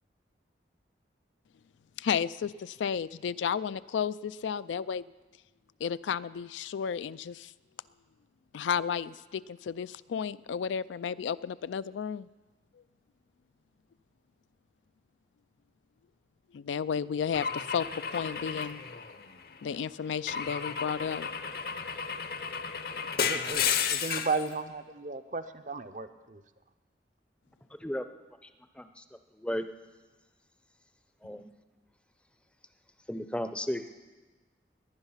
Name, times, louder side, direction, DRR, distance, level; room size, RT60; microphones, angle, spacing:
voice 1, 2.0-5.0 5.8-7.5 8.5-12.3 16.5-18.8 19.6-21.3, left 7 dB, 85° left, 16 dB, 0.3 m, -33 dB
Car / Engine / Glass, 17.3-19.6 20.3-24.4, left 7 dB, 55° left, 0.7 m, -33 dB
voice 2, 23.2-23.6 23.9-26.4, right 4 dB, 45° right, 11 dB, 0.6 m, -34 dB
voice 3, 29.3-29.7 31.2-31.5 33.1-33.9, equal, 5° left, 9 dB, 0.5 m, -34 dB
18.5 x 10.5 x 5.7 m, 1.3 s
head